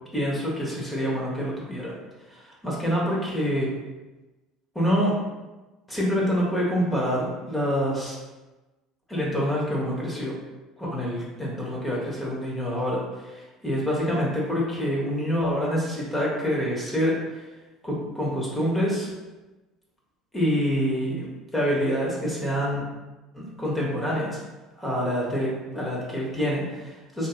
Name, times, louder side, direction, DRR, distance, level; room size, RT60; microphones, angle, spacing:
voice 1, 0.1-2.0 2.3-3.7 4.7-5.2 5.9-8.2 9.1-10.3 10.8-17.1 17.8-19.1 20.3-22.8 23.3-24.4 24.8-27.3, equal, 15° left, -4 dB, 1.0 m, -26 dB
2.7 x 2.6 x 2.4 m, 1.1 s
hypercardioid pair, 65°, 0 cm